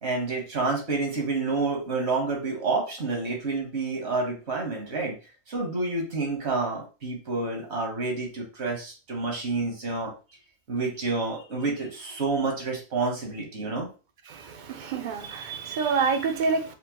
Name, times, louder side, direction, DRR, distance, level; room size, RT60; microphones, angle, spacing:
voice 1, 0.0-5.1 5.5-10.1 10.7-13.9, right 3 dB, 75° right, 1.4 m, -29 dB
voice 2, 14.3-16.7, right 5 dB, 55° right, 0.6 m, -27 dB
4.4 x 2.1 x 2.9 m
omnidirectional pair, 1.1 m